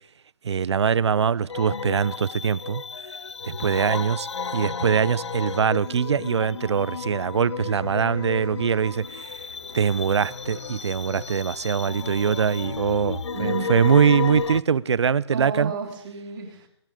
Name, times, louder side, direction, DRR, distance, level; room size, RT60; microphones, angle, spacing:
voice 1, 0.4-2.8 3.4-4.3 4.5-9.3 9.7-15.7, right 7 dB, 80° right, 0.5 m, -23 dB
sound 1, 1.5-14.6, left 5 dB, 90° left, 0.5 m, -33 dB
sound 2, 7.7-13.0, left 2 dB, 60° left, 7.2 m, -48 dB
voice 2, 13.3-13.9 15.3-16.7, right 6 dB, 50° right, 3.2 m, -32 dB
22.5 x 9.0 x 5.1 m
hypercardioid pair, 150°, 14 cm